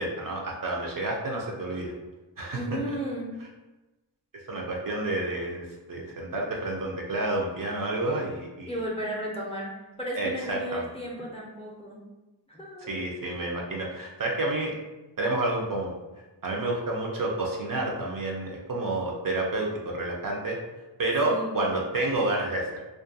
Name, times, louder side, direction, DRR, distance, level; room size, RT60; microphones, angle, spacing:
voice 1, 0.0-1.9 2.4-2.6 4.5-8.8 10.1-10.9 12.9-14.7 15.2-15.9 16.4-20.6 21.0-22.8, right 2 dB, 45° right, -1 dB, 0.5 m, -29 dB
voice 2, 2.5-3.3 8.7-9.7 10.0-12.0 12.5-13.4 21.2-21.6, equal, 15° left, -4 dB, 0.5 m, -34 dB
2.4 x 2.2 x 2.6 m, 1.1 s
wide cardioid pair, 70°, 47 cm